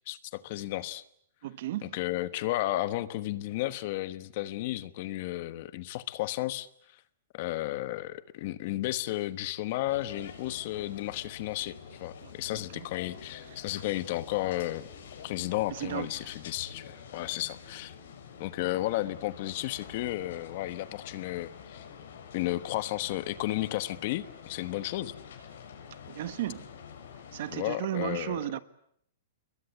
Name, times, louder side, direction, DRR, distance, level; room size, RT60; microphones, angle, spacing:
voice 1, 0.1-1.0 1.8-6.7 7.3-14.9 15.2-17.9 18.4-21.9 22.3-25.1 27.5-28.4, left 16 dB, 40° left, 1.2 m, -33 dB
voice 2, 1.4-2.0 12.2-12.9 13.5-13.7 15.7-16.3 26.1-26.7 27.3-28.6, right 13 dB, 50° right, 1.3 m, -35 dB
sound 1, 9.9-27.6, left 7 dB, 65° left, 6.7 m, -47 dB
29.0 x 22.0 x 8.4 m
hypercardioid pair, 170°, 0 cm